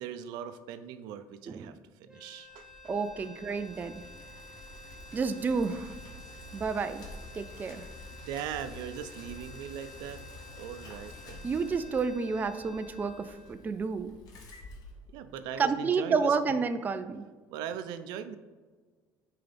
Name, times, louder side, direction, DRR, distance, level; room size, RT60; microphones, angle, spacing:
voice 1, 0.0-2.7 8.1-10.2 10.6-11.5 15.1-16.6 17.5-18.4, right 9 dB, 80° right, 10 dB, 0.6 m, -40 dB
sound 1, 2.1-14.3, left 2 dB, 10° right, 0.9 m, -52 dB
Bicycle, 2.5-15.6, left 2 dB, 60° left, 1.6 m, -49 dB
voice 2, 2.9-4.0 5.1-5.9 6.5-7.0 7.3-7.9 11.4-14.1 15.6-17.3, right 5 dB, 25° right, 10 dB, 0.4 m, -30 dB
9.4 x 4.6 x 3.4 m, 1.4 s
cardioid pair, 110°, 7 cm